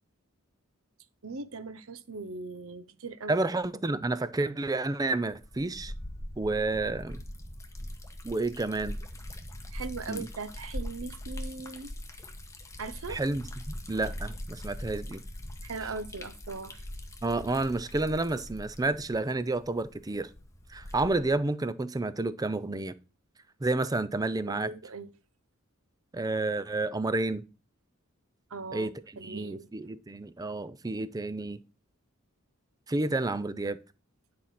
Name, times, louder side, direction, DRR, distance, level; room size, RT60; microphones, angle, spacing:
voice 1, 1.2-3.5 9.7-11.9 12.8-13.2 15.6-16.9 24.5-25.1 28.5-29.7, right 4 dB, 70° right, 0.8 m, -40 dB
voice 2, 3.3-5.9 6.4-7.2 8.2-9.0 10.1-10.3 13.1-15.2 17.2-20.3 20.7-22.9 23.6-24.7 26.1-27.4 28.7-28.9 29.2-31.6 32.9-33.8, right 2 dB, 15° right, 0.5 m, -30 dB
Liquid, 5.3-21.4, left 1 dB, 15° left, 1.2 m, -42 dB
10.0 x 4.2 x 5.9 m
head